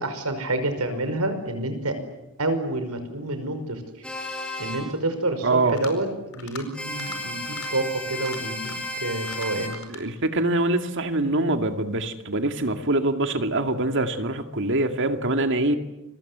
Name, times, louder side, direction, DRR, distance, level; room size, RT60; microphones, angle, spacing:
voice 1, 0.0-2.0 2.4-3.8 4.6-9.8 15.7-15.8, right 2 dB, 80° right, 8 dB, 5.3 m, -28 dB
sound 1, 4.0-4.8 6.7-9.7, left 1 dB, 5° left, 5.5 m, -33 dB
voice 2, 5.4-5.8 9.9-15.8, right 2 dB, 55° right, 7 dB, 2.3 m, -24 dB
sound 2, 5.6-6.0 6.3-6.6 6.9-7.2 7.5-7.7 8.1-8.9 9.2-10.0, left 6 dB, 70° left, 4.7 m, -42 dB
29.5 x 24.0 x 8.1 m, 0.93 s
head